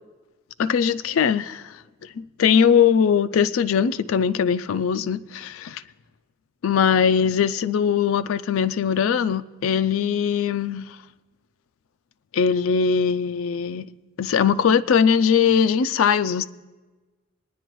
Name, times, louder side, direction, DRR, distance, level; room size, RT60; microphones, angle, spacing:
voice 1, 0.6-1.7 2.2-5.8 6.6-10.9 12.3-13.9 14.2-16.4, left 7 dB, 90° left, 0.4 m, -21 dB
22.0 x 9.9 x 3.1 m
head